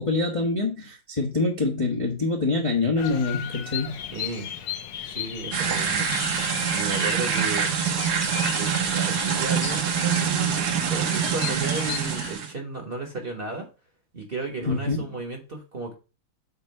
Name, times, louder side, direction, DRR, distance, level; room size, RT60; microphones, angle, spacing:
voice 1, 0.0-3.9 14.6-15.0, left 3 dB, 25° left, 0.8 m, -25 dB
Bird vocalization bird call bird song, 3.0-12.3, left 9 dB, 70° left, 1.2 m, -36 dB
voice 2, 4.1-4.5 5.0-6.1 6.7-7.7 8.5-13.7 14.1-15.9, right 3 dB, 35° right, 1.2 m, -34 dB
sound 1, 5.5-12.5, right 7 dB, 60° right, 1.4 m, -25 dB
8.2 x 2.8 x 5.3 m
omnidirectional pair, 2.2 m